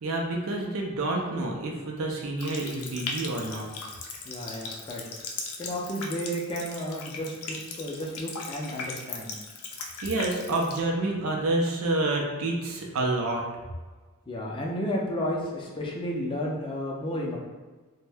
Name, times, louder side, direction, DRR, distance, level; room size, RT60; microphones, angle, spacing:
voice 1, 0.0-3.7 10.0-13.4, right 2 dB, 70° right, -1 dB, 0.4 m, -28 dB
Water tap faucet, 2.4-10.8, left 4 dB, 85° left, 0.5 m, -38 dB
voice 2, 4.3-5.0 5.6-9.3 14.3-17.4, equal, 25° left, -2 dB, 0.4 m, -32 dB
2.6 x 2.1 x 3.3 m, 1.3 s
head